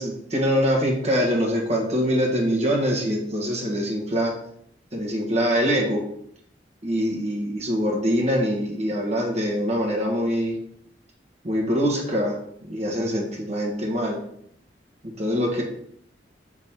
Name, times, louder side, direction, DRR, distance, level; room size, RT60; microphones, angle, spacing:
voice 1, 0.0-4.3 4.9-6.0 6.8-10.5 11.4-12.4 12.7-14.2 15.0-15.6, equal, 40° right, -1 dB, 1.4 m, -24 dB
6.1 x 3.7 x 4.4 m, 0.70 s
head